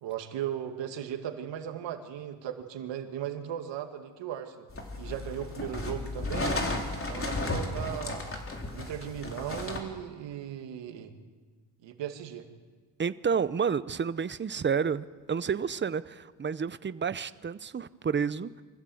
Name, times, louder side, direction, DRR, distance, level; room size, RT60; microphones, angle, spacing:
voice 1, 0.0-4.7 5.0-6.6 7.1-8.3 8.7-11.1 11.8-12.5, right 10 dB, 80° right, 6 dB, 2.3 m, -37 dB
sound 1, 4.7-9.8, left 2 dB, 30° left, 3.9 m, -34 dB
voice 2, 13.0-18.6, right 6 dB, 25° right, 15 dB, 0.8 m, -30 dB
25.0 x 15.0 x 7.9 m, 1.4 s
cardioid pair, 85°, 43 cm